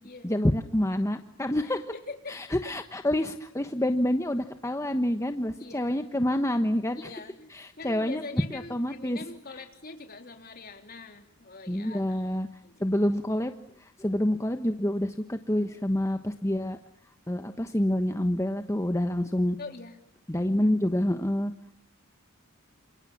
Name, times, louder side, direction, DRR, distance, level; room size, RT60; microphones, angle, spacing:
voice 1, 0.2-1.9 2.3-7.1 7.5-8.2 8.5-9.2 11.7-12.5 12.8-13.5 14.0-16.8 17.3-19.6 20.3-21.5, left 1 dB, 15° left, 7 dB, 1.2 m, -27 dB
voice 2, 1.6-2.4 5.6-5.9 6.9-12.8 19.6-20.0 20.6-20.8, left 3 dB, 45° left, 5 dB, 3.7 m, -44 dB
28.5 x 28.0 x 7.2 m, 0.79 s
head